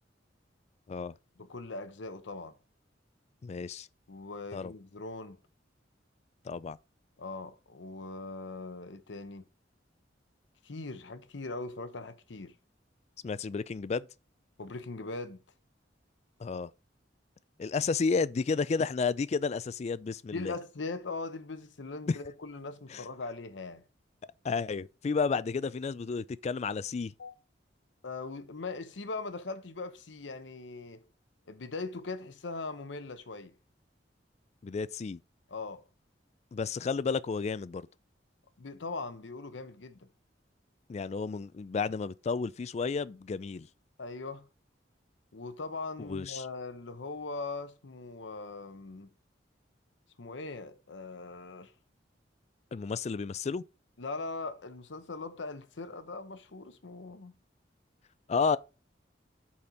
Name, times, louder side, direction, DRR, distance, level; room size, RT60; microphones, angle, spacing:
voice 1, 1.4-2.6 4.1-5.4 7.2-9.4 10.6-12.5 14.6-15.4 20.3-23.8 27.2-27.3 28.0-31.1 31.5-33.5 35.5-35.8 38.6-40.1 44.0-44.5 45.3-49.1 50.2-51.7 54.0-57.3, left 3 dB, 85° left, 0.8 m, -40 dB
voice 2, 3.4-3.9 4.5-4.7 6.4-6.8 13.2-14.1 16.4-16.7 17.6-20.5 22.1-22.2 22.9-23.0 24.4-27.1 34.6-35.2 36.5-37.9 40.9-43.7 46.0-46.5 52.7-53.6 58.3-58.6, left 5 dB, 35° left, 0.3 m, -32 dB
8.5 x 4.3 x 4.4 m
head